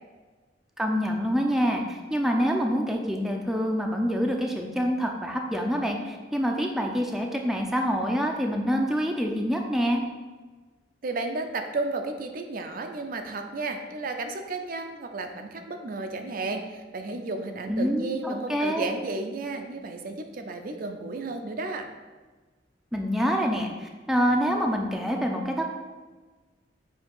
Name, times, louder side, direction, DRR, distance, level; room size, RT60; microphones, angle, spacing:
voice 1, 0.8-10.0 17.7-18.9 22.9-25.7, equal, ahead, 1 dB, 0.5 m, -26 dB
voice 2, 11.0-21.9, right 3 dB, 50° right, 5 dB, 0.5 m, -33 dB
7.2 x 2.8 x 5.3 m, 1.3 s
head